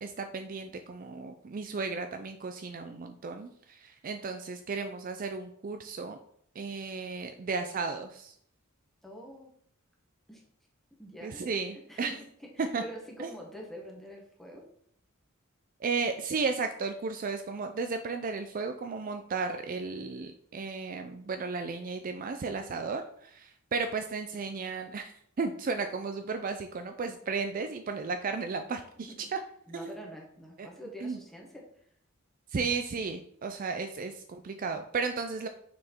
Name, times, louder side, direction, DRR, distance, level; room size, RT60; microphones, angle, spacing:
voice 1, 0.0-6.2 6.6-8.3 11.2-12.1 12.6-12.8 13.2-13.3 15.8-29.4 29.7-29.9 30.6-30.7 31.0-31.2 32.5-35.5, right 4 dB, 40° right, 6 dB, 0.4 m, -34 dB
voice 2, 9.0-9.5 10.3-10.4 11.0-11.4 11.9-14.6 29.0-29.3 29.7-31.8, equal, ahead, -1 dB, 1.4 m, -46 dB
6.2 x 4.3 x 4.4 m, 0.67 s
head